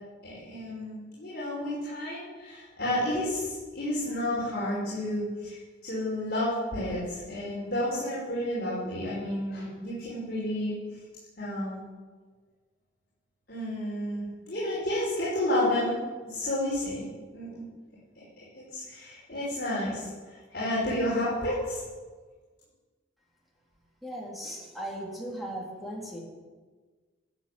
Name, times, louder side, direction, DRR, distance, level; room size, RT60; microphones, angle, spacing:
voice 1, 0.2-10.8 11.4-11.8 13.5-16.0 16.2-17.6 18.1-18.2 18.5-21.8, left 1 dB, 60° left, -10 dB, 5.0 m, -31 dB
voice 2, 24.0-26.2, right 1 dB, ahead, -4 dB, 3.2 m, -37 dB
13.5 x 8.4 x 7.6 m, 1.4 s
head